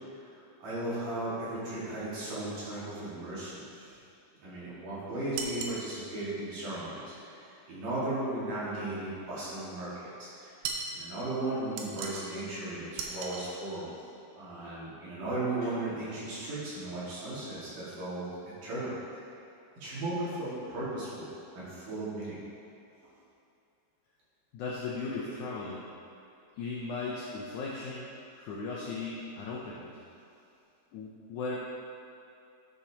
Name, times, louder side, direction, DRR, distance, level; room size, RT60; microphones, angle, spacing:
voice 1, 0.1-4.0 4.4-10.6 10.9-13.9 14.4-18.3 18.6-19.0 19.8-21.3 21.5-22.4, right 2 dB, 60° right, -9 dB, 3.6 m, -36 dB
sound 1, 5.4-5.8 10.6-11.0 11.8-12.3 13.0-13.5, right 5 dB, 75° right, 2.5 m, -36 dB
voice 2, 24.5-25.8 26.6-28.1 28.4-29.9 30.9-31.6, left 4 dB, 80° left, -5 dB, 1.7 m, -37 dB
11.0 x 6.8 x 2.9 m, 2.7 s
omnidirectional pair, 4.4 m